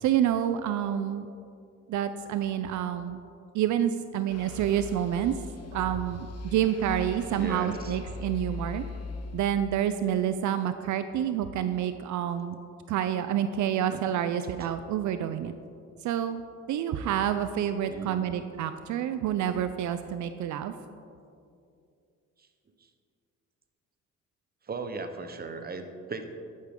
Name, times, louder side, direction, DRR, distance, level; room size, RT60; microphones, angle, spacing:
voice 1, 0.0-1.3 1.9-3.2 3.5-5.4 5.7-8.9 9.3-12.6 12.9-15.5 16.0-16.4 16.7-20.7, right 10 dB, 75° right, 10 dB, 0.5 m, -28 dB
sound 1, 4.3-9.8, left 2 dB, 55° left, 1.2 m, -40 dB
voice 2, 7.4-8.0 13.9-14.0 14.6-14.7 17.9-18.3 22.4-22.5 24.6-26.4, right 4 dB, 30° right, 7 dB, 1.0 m, -37 dB
11.0 x 9.7 x 3.7 m, 2.5 s
cardioid pair, 90°, 30 cm